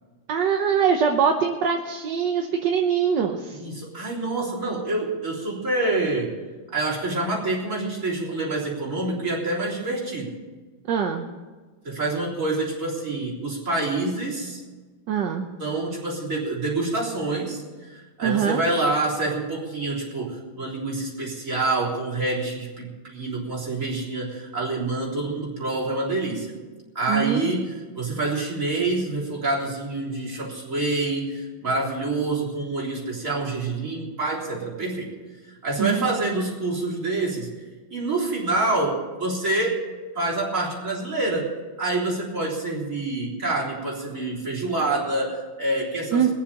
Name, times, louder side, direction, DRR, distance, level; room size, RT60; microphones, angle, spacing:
voice 1, 0.3-3.6 10.9-11.3 15.1-15.5 18.2-18.6 27.1-27.4 35.8-36.0 46.1-46.3, right 7 dB, 60° right, 3 dB, 1.4 m, -23 dB
voice 2, 3.5-6.4 6.7-10.4 11.8-14.6 15.6-26.6 26.9-35.1 35.4-37.5 37.9-39.9 40.1-41.5 41.8-46.3, right 2 dB, 35° right, -6 dB, 4.1 m, -27 dB
21.5 x 7.3 x 7.0 m, 1.3 s
omnidirectional pair, 2.4 m